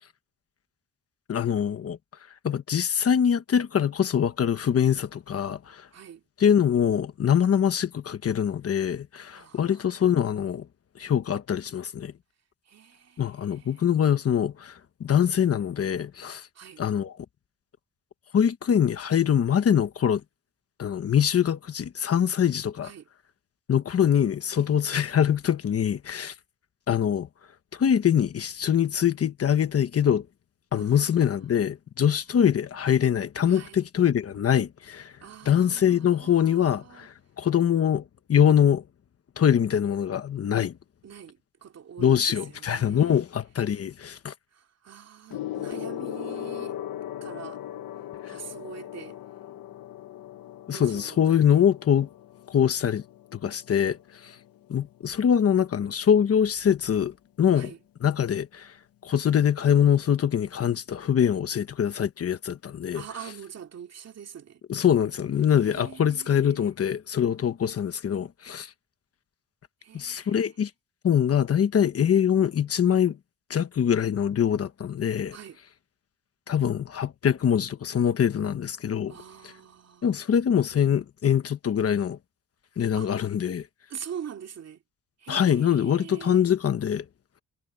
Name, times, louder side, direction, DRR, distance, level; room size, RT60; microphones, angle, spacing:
voice 1, 1.3-2.0 2.4-5.9 6.4-10.7 10.9-12.1 13.2-16.5 16.8-17.2 18.3-20.2 20.8-22.9 23.7-26.3 26.9-27.3 27.7-30.2 30.7-35.1 35.5-38.0 38.3-38.8 39.4-40.7 42.0-44.3 48.2-48.3 50.7-52.1 52.5-53.0 53.3-54.4 54.7-57.7 58.0-58.7 59.0-63.0 64.7-68.7 69.9-70.7 71.0-73.2 73.5-75.4 76.5-79.1 80.0-82.2 82.8-83.7 85.3-87.0, left 8 dB, 45° left, 1.1 m, -23 dB
voice 2, 5.9-6.2 9.3-10.0 12.7-13.8 16.5-16.8 22.8-23.1 30.7-31.5 33.5-33.9 35.2-37.1 41.0-43.2 44.5-46.8 47.2-47.6 48.2-49.2 50.7-51.6 57.5-57.8 62.9-64.6 65.6-66.7 69.8-70.4 75.3-75.6 79.1-80.2 83.0-83.1 83.9-84.8 85.2-86.4, right 8 dB, 50° right, 2.6 m, -44 dB
Gong, 45.3-55.1 56.0-56.3, left 12 dB, 85° left, 1.1 m, -39 dB
wide cardioid pair, 175°, 34 cm